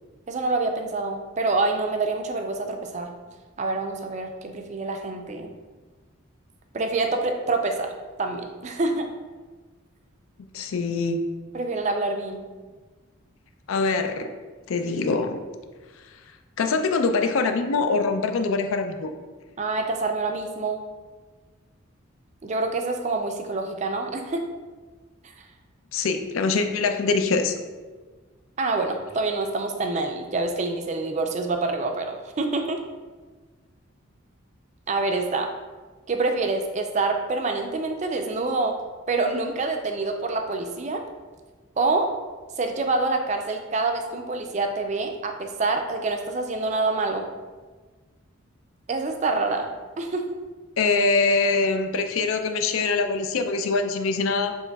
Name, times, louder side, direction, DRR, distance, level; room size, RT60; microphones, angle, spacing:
voice 1, 0.3-3.1 3.6-5.5 6.7-7.9 8.2-9.1 11.5-12.5 19.6-20.8 22.4-24.4 28.6-32.8 34.9-35.5 36.1-38.8 39.1-41.0 41.8-42.1 42.6-47.3 48.9-49.7 50.0-50.3, right 3 dB, 35° right, 4 dB, 0.4 m, -26 dB
voice 2, 10.5-11.2 13.7-14.3 14.7-15.4 16.6-19.1 25.9-27.5 50.8-54.6, left 4 dB, 75° left, 7 dB, 0.4 m, -23 dB
7.1 x 3.0 x 2.3 m, 1.4 s
head